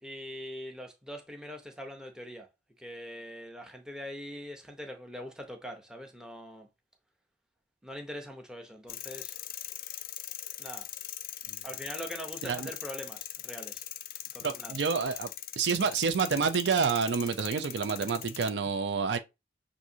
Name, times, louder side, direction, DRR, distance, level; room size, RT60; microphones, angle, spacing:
voice 1, 0.0-2.5 2.8-6.7 7.8-9.4 10.6-10.9 11.6-13.8 14.3-14.8, equal, 5° right, 0.7 m, -42 dB
sound 1, 8.9-18.5, left 13 dB, 55° left, 0.3 m, -41 dB
voice 2, 14.4-15.3 15.6-19.2, right 5 dB, 80° right, 0.5 m, -28 dB
6.1 x 2.6 x 2.7 m
head